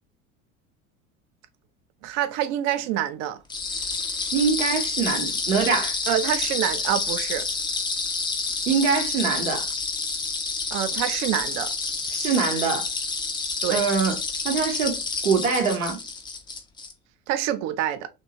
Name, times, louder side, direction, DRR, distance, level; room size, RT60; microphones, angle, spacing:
voice 1, 2.0-3.4 6.1-7.5 10.7-11.7 13.6-13.8 17.3-18.1, right 11 dB, 45° right, 0.5 m, -26 dB
sound 1, 3.5-16.9, left 4 dB, 10° left, 0.4 m, -29 dB
voice 2, 4.3-5.9 8.7-9.7 12.1-12.9 13.7-14.1 14.4-15.0 15.2-16.0, right 5 dB, 85° right, 0.8 m, -23 dB
2.8 x 2.2 x 2.5 m
figure-of-eight pair, 70°, 39 cm